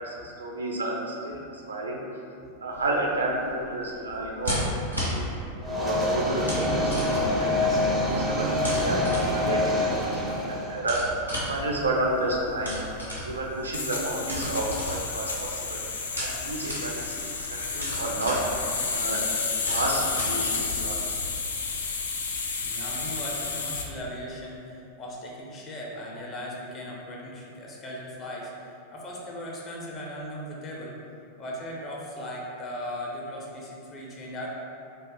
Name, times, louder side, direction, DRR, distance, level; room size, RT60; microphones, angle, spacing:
voice 1, 0.0-2.0 2.6-4.6 5.1-5.3 5.7-7.8 8.1-11.0 11.5-12.8 13.2-15.8 16.2-18.4 18.9-21.2, right 1 dB, 75° right, -1 dB, 0.4 m, -31 dB
sound 1, 2.7-21.3, equal, 90° left, 0.8 m, -36 dB
sound 2, 5.6-10.8, left 1 dB, 15° right, 0.4 m, -26 dB
sound 3, 11.5-23.9, left 4 dB, 65° left, 0.3 m, -31 dB
voice 2, 22.6-28.5 28.9-31.0 31.4-34.5, equal, 30° left, -4 dB, 0.6 m, -38 dB
2.6 x 2.3 x 3.6 m, 2.7 s
figure-of-eight pair, 90°, 0 cm